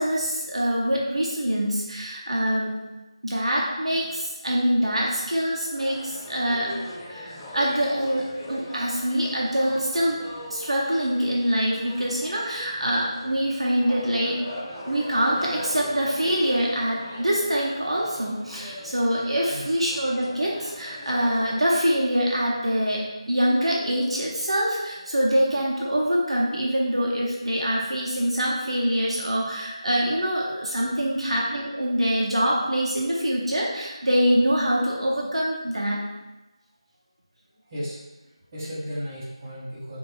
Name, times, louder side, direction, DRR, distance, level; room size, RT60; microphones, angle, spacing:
voice 1, 0.0-2.7 3.2-6.7 7.1-10.2 10.5-14.4 14.8-36.0, equal, 75° right, -3 dB, 0.8 m, -24 dB
sound 1, 5.7-21.5, left 1 dB, ahead, 0.6 m, -40 dB
voice 2, 37.5-40.0, equal, 25° right, -10 dB, 1.1 m, -36 dB
3.0 x 2.6 x 3.0 m, 1.1 s
figure-of-eight pair, 170°, 3 cm